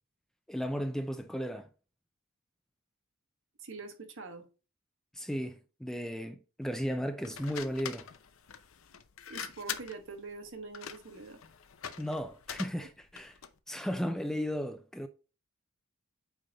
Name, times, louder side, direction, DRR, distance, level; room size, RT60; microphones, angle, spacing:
voice 1, 0.5-1.7 5.1-8.1 12.0-13.4 13.7-15.1, equal, ahead, 0.4 m, -35 dB
voice 2, 3.6-4.5 9.3-11.4, right 4 dB, 60° right, 1.3 m, -44 dB
sound 1, 7.2-13.6, left 8 dB, 65° left, 0.7 m, -44 dB
8.8 x 3.5 x 3.9 m
head